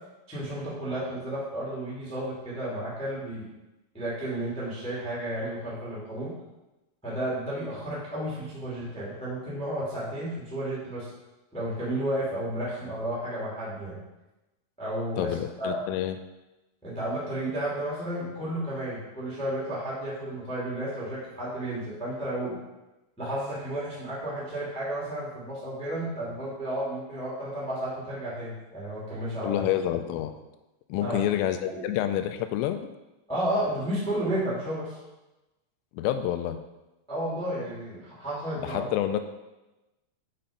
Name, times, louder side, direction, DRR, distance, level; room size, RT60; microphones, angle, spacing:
voice 1, 0.3-3.5 3.9-6.3 7.0-11.1 11.5-14.0 14.8-15.8 16.8-22.6 23.2-29.6 31.0-31.2 31.7-31.8 33.3-34.9 37.1-38.9, right 1 dB, 5° left, -8 dB, 1.2 m, -32 dB
voice 2, 15.2-16.2 29.4-30.3 30.9-32.8 35.9-36.6 38.6-39.2, left 11 dB, 85° left, 9 dB, 3.1 m, -28 dB
8.8 x 4.3 x 5.2 m, 1.0 s
omnidirectional pair, 5.7 m